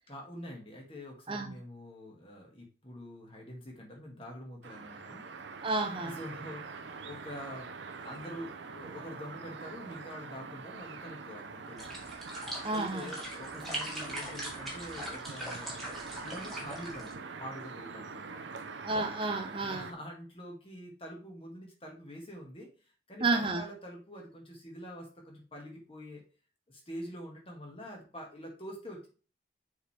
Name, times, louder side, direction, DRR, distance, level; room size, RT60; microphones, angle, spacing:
voice 1, 0.1-5.2 6.0-12.1 12.7-15.7 16.2-18.8 19.6-22.7 23.1-26.2 26.7-29.1, equal, 30° left, 1.8 m, -45 dB
voice 2, 1.3-1.6 5.6-6.2 12.6-13.1 18.8-19.9 23.2-23.6, right 3 dB, 25° right, 0.5 m, -31 dB
sound 1, 4.6-19.9, right 4 dB, 70° right, 0.6 m, -44 dB
sound 2, 11.8-17.1, equal, ahead, 1.9 m, -41 dB
6.6 x 4.6 x 3.3 m
head